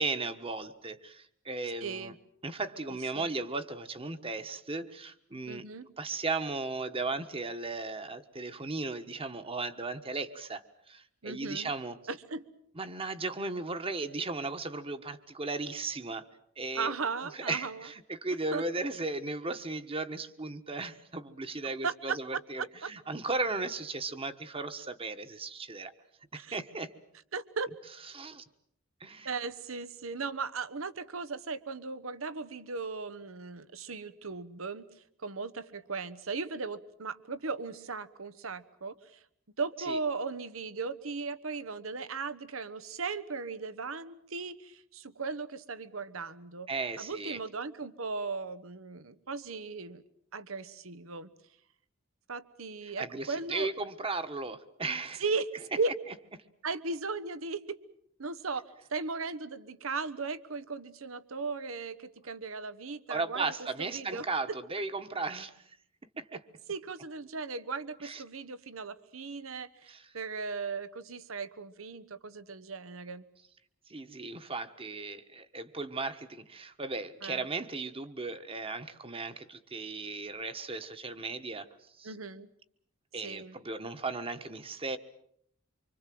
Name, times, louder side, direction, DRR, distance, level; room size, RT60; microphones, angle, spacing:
voice 1, 0.0-2.1 2.4-5.6 6.0-12.0 12.7-16.3 16.6-16.9 17.3-25.9 26.3-26.9 28.1-28.4 29.0-29.3 39.9-40.0 46.7-47.4 53.0-55.2 63.1-65.6 66.2-66.4 68.0-68.2 69.9-70.1 73.9-81.7 82.0-82.1 83.1-85.0, right 3 dB, 25° right, 9 dB, 1.3 m, -36 dB
voice 2, 1.8-2.1 3.1-3.3 5.5-5.9 11.2-11.7 12.1-12.5 16.7-17.9 18.5-18.6 21.8-22.4 22.8-22.9 26.3-26.6 27.3-27.7 29.2-34.9 35.2-39.2 39.6-46.7 47.0-50.0 50.3-51.3 52.3-53.7 55.2-55.5 55.8-55.9 56.6-57.8 58.2-58.6 58.9-64.6 66.7-73.2 77.2-77.5 82.0-82.5 83.2-83.6, right 4 dB, 85° right, 15 dB, 1.2 m, -37 dB
25.5 x 25.0 x 7.7 m, 0.69 s
head